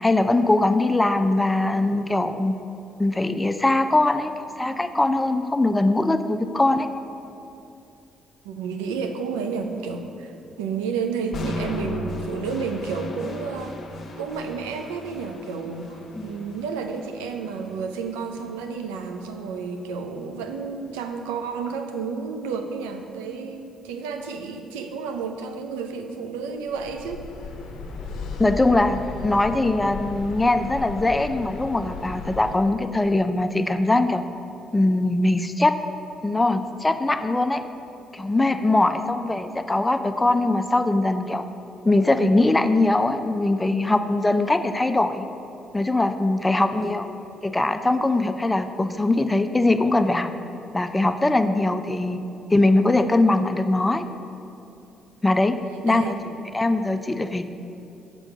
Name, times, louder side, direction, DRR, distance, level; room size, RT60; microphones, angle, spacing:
voice 1, 0.0-2.5 3.0-4.3 4.6-6.9 16.1-16.3 28.4-34.2 34.7-35.7 36.2-37.6 38.1-41.4 41.8-45.3 45.7-47.1 47.4-50.3 50.7-52.2 52.5-54.0 55.2-55.6 55.8-56.1 56.5-57.4, left 2 dB, 15° left, 9 dB, 0.5 m, -21 dB
voice 2, 8.4-10.3 10.6-13.8 14.2-27.2 38.9-39.0 46.6-46.9 55.9-56.3, right 5 dB, 90° right, 5 dB, 0.5 m, -31 dB
sound 1, 11.3-19.3, left 2 dB, 55° left, 0.9 m, -37 dB
sound 2, 26.7-32.6, left 4 dB, 70° left, 0.7 m, -35 dB
6.1 x 4.6 x 6.4 m, 2.7 s
hypercardioid pair, 55°, 0 cm